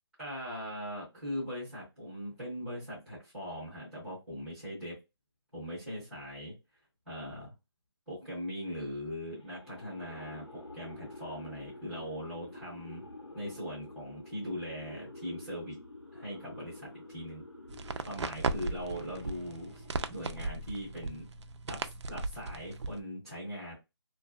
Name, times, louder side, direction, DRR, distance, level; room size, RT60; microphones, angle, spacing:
voice 1, 0.2-4.9 5.5-6.5 7.1-7.5 8.1-13.1 13.3-15.8 16.1-17.4 18.0-19.8 20.1-21.3 21.7-23.7, equal, ahead, -10 dB, 0.5 m, -40 dB
sound 1, 9.4-20.5, left 1 dB, 90° left, 1.1 m, -49 dB
sound 2, 17.7-23.0, right 3 dB, 85° right, 0.4 m, -37 dB
2.7 x 2.4 x 2.2 m, 0.23 s
hypercardioid pair, 180°, 14 cm